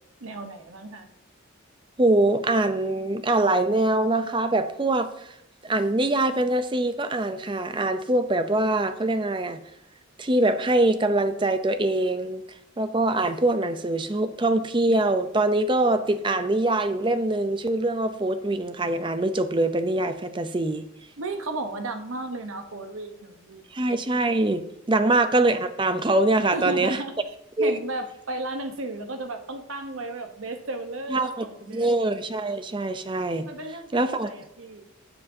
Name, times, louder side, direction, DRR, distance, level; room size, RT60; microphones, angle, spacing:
voice 1, 0.2-1.1 21.2-23.7 26.5-31.9 33.5-34.9, right 2 dB, 80° right, 6 dB, 1.0 m, -34 dB
voice 2, 2.0-5.3 5.6-9.6 10.2-12.4 12.8-20.9 23.7-27.0 27.6-27.8 31.1-31.4 31.7-33.5 33.9-34.3, right 2 dB, 25° right, 10 dB, 0.6 m, -23 dB
12.5 x 7.1 x 2.7 m, 0.82 s
head